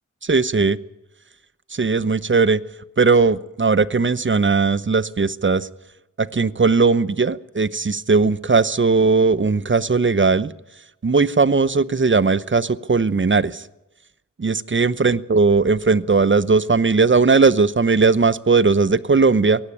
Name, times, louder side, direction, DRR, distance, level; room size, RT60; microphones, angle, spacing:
voice 1, 0.2-0.8 1.7-2.6 3.0-5.7 6.2-10.5 11.0-13.6 14.4-19.6, right 4 dB, 40° right, 18 dB, 0.8 m, -18 dB
17.0 x 16.0 x 10.0 m, 0.94 s
wide cardioid pair, 55°, 31 cm